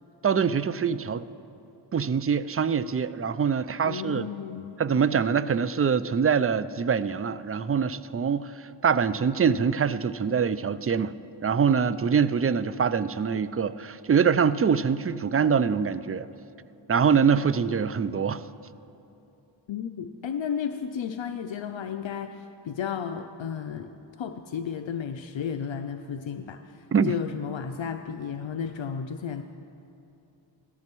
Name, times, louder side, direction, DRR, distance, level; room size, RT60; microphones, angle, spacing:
voice 1, 0.2-1.2 1.9-4.3 4.8-11.2 11.4-16.3 16.9-18.5 26.9-27.1, right 6 dB, 30° right, 15 dB, 0.4 m, -24 dB
voice 2, 3.8-4.7 19.7-23.9 24.2-26.8 27.1-29.4, left 7 dB, 75° left, 7 dB, 0.6 m, -33 dB
18.0 x 14.0 x 3.0 m, 2.8 s
cardioid pair, 40°, 46 cm